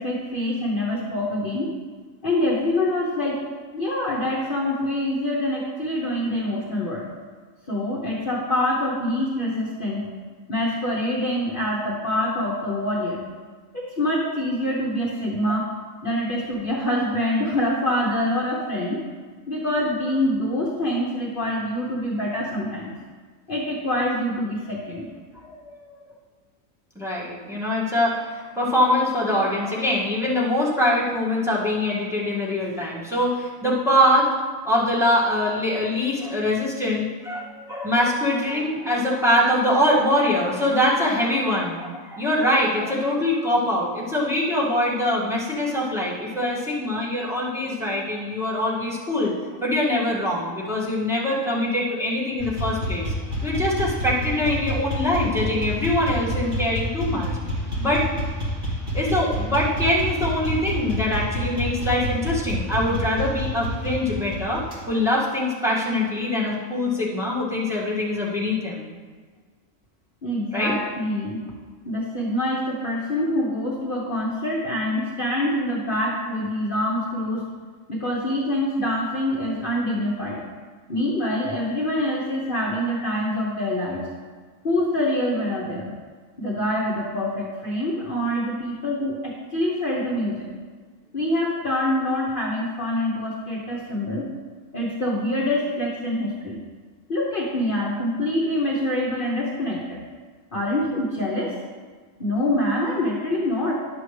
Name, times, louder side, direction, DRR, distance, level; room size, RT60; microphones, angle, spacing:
voice 1, 0.0-1.7 2.2-3.4 3.7-7.1 7.7-10.1 10.5-13.2 13.7-15.7 16.0-19.0 19.5-22.9 23.5-25.1 70.2-71.5 71.8-77.5 77.9-80.4 80.9-84.0 84.6-85.9 86.4-90.5 91.1-94.3 94.7-96.6 97.1-100.0 100.5-101.6 102.2-103.7, left 1 dB, 45° left, -4 dB, 1.0 m, -25 dB
voice 2, 25.4-25.9 27.0-34.3 34.7-53.1 53.4-57.3 57.8-58.0 58.9-64.6 64.9-68.9 70.5-70.7, left 1 dB, ahead, -7 dB, 1.7 m, -23 dB
sound 1, 52.4-64.8, left 1 dB, 35° right, 2.0 m, -28 dB
10.5 x 6.8 x 3.2 m, 1.5 s
omnidirectional pair, 1.4 m